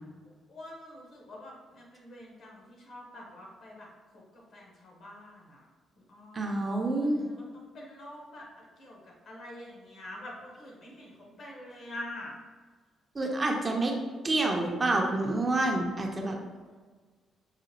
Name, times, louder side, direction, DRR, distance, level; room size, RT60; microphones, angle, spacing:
voice 1, 0.5-5.7 6.0-6.6 7.0-12.3, left 1 dB, 60° left, -2 dB, 1.1 m, -46 dB
voice 2, 6.3-7.3 13.1-13.9 14.2-16.4, right 2 dB, 30° right, 1 dB, 0.5 m, -28 dB
4.8 x 2.1 x 2.9 m, 1.4 s
cardioid pair, 90°, 0 cm